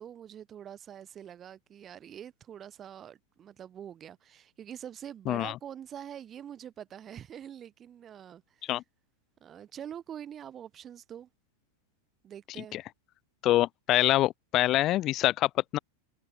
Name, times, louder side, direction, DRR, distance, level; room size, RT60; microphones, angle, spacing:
voice 1, 0.0-8.8 9.4-11.3 12.2-12.8, right 9 dB, 25° right, 0.9 m, -45 dB
voice 2, 5.3-5.6 8.7-8.8 12.7-12.8 13.4-15.8, left 15 dB, 35° left, 0.3 m, -25 dB
figure-of-eight pair, 90°, 0 cm